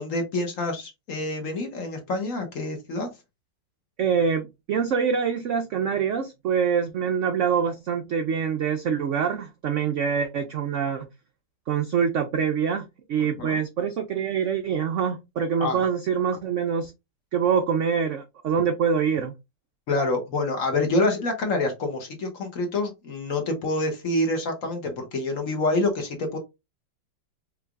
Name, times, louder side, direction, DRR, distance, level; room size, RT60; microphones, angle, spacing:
voice 1, 0.0-3.1 13.4-13.6 15.6-15.9 19.9-26.4, left 2 dB, 50° left, 4 dB, 1.2 m, -27 dB
voice 2, 4.0-11.1 11.7-16.9 17.3-19.3, right 7 dB, 80° right, 6 dB, 0.6 m, -25 dB
4.8 x 3.2 x 2.4 m, 0.23 s
omnidirectional pair, 2.0 m